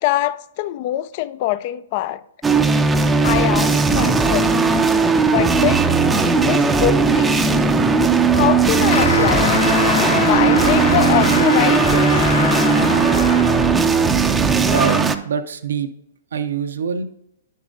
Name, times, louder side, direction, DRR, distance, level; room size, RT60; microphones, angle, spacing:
voice 1, 0.0-2.2 3.2-4.5 5.2-5.8 6.3-7.8 8.3-9.5 10.1-12.3, left 14 dB, 45° left, 0.3 m, -23 dB
sound 1, 2.4-15.1, right 4 dB, 10° right, 0.5 m, -17 dB
sound 2, 8.9-14.0 14.7-15.2, left 5 dB, 75° left, 1.1 m, -23 dB
voice 2, 14.7-15.9 16.3-17.0, right 6 dB, 75° right, 0.6 m, -24 dB
9.8 x 6.6 x 2.6 m
hypercardioid pair, 125°, 0 cm